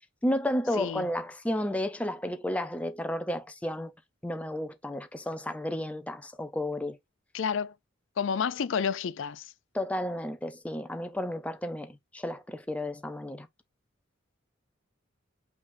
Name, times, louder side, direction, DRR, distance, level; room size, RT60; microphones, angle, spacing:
voice 1, 0.2-3.9 4.2-7.0 9.7-13.5, left 1 dB, 5° left, 0.5 m, -32 dB
voice 2, 7.3-7.7 8.2-9.5, left 6 dB, 70° left, 0.4 m, -30 dB
5.7 x 3.4 x 2.6 m
head